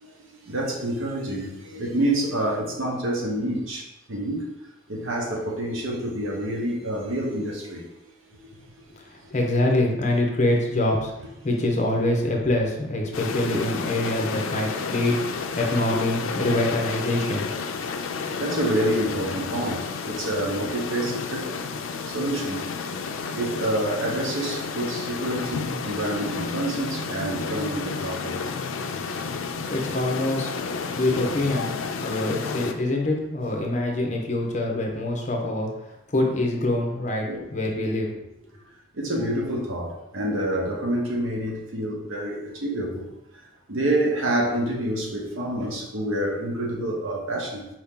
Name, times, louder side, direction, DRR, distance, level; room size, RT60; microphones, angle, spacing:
voice 1, 0.0-4.5 4.9-7.8 8.4-8.5 18.2-21.5 22.1-23.0 23.3-28.4 29.4-29.5 37.3-37.5 38.9-43.1 43.7-47.7, right 1 dB, 85° right, -1 dB, 1.0 m, -28 dB
voice 2, 9.3-11.1 11.4-15.2 15.5-17.5 29.7-30.5 31.0-31.7 32.0-35.7 36.1-37.2 37.5-38.1, left 1 dB, 35° left, 1 dB, 0.7 m, -24 dB
sound 1, 13.1-32.7, left 5 dB, 80° left, 0.4 m, -31 dB
4.6 x 2.8 x 3.6 m, 0.88 s
head